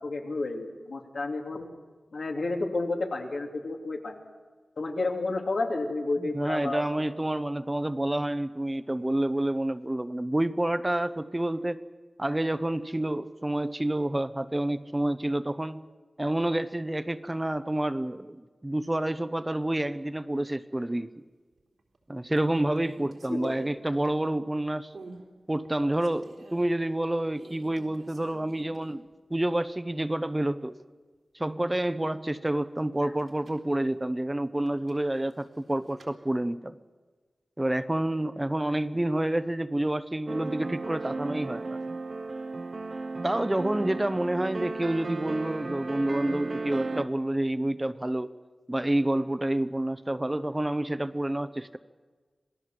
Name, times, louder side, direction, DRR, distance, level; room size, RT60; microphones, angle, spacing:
voice 1, 0.0-1.7 2.1-4.2 4.8-6.9 23.3-23.6 33.0-33.1, left 2 dB, 80° left, 1 dB, 3.1 m, -31 dB
voice 2, 6.2-11.8 12.2-15.8 16.2-21.1 22.1-24.9 25.5-30.7 31.3-36.8 37.6-41.8 43.2-48.3 48.7-51.8, right 1 dB, 20° right, 12 dB, 0.8 m, -28 dB
sound 1, 21.6-22.0 22.3-24.5 24.9-25.3 25.6-26.7 27.3-29.1 29.4-29.5 33.0-33.7 34.6-36.1, right 3 dB, 90° right, 3.7 m, -51 dB
sound 2, 40.3-47.1, right 3 dB, 50° right, 0.9 m, -35 dB
27.0 x 18.5 x 7.7 m, 1.4 s
wide cardioid pair, 85°, 0 cm